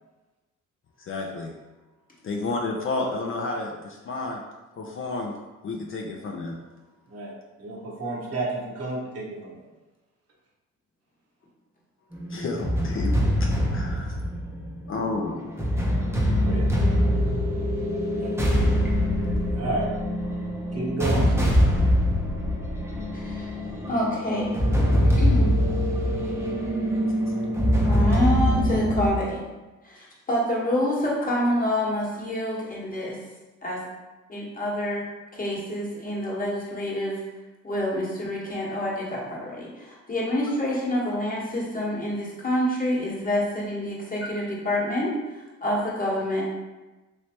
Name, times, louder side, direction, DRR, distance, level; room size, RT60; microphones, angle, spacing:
voice 1, 1.0-1.5 2.2-4.4 4.8-5.4 5.6-6.6 12.3-14.1 14.9-15.5, left 3 dB, 45° left, 0 dB, 0.5 m, -31 dB
voice 2, 7.1-9.6 16.4-16.7 18.1-18.3 19.5-19.8 20.7-21.5, right 2 dB, 55° right, -4 dB, 1.0 m, -31 dB
sound 1, 12.1-29.1, equal, 10° right, 0.6 m, -23 dB
voice 3, 23.1-23.5 23.9-25.5 27.8-29.4 29.8-33.2 33.6-33.9 34.3-35.0 35.3-37.2 37.6-46.4, left 1 dB, 30° left, -5 dB, 1.1 m, -27 dB
3.1 x 3.1 x 2.8 m, 1.1 s
cardioid pair, 90°, 30 cm